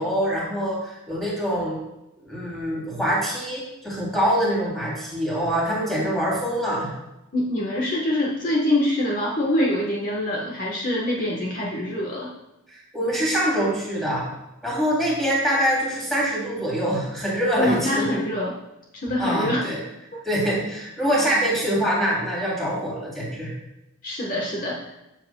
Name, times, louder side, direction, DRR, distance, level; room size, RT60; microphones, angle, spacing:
voice 1, 0.0-1.8 2.2-6.9 12.7-14.3 14.6-18.1 19.2-19.8 20.2-23.5, equal, ahead, -6 dB, 3.0 m, -24 dB
voice 2, 7.3-12.3 17.6-18.5 19.0-19.6 24.0-24.9, left 1 dB, 40° left, -3 dB, 1.2 m, -24 dB
13.0 x 7.5 x 2.3 m, 0.94 s
head